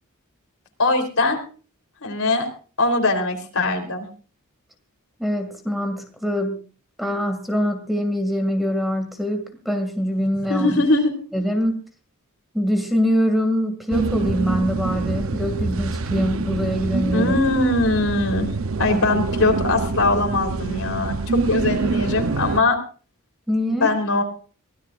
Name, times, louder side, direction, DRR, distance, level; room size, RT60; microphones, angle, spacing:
voice 1, 0.8-1.4 2.0-2.5 2.8-4.1 10.5-11.1 17.1-18.5 18.8-22.8 23.7-24.2, left 2 dB, 70° left, 4 dB, 3.6 m, -21 dB
voice 2, 5.2-6.6 7.0-10.8 11.3-11.8 12.5-17.3 18.9-19.0 23.5-23.9, equal, ahead, 5 dB, 2.2 m, -23 dB
sound 1, 13.9-22.6, right 3 dB, 60° right, 0.7 m, -25 dB
23.5 x 17.0 x 2.5 m, 0.38 s
head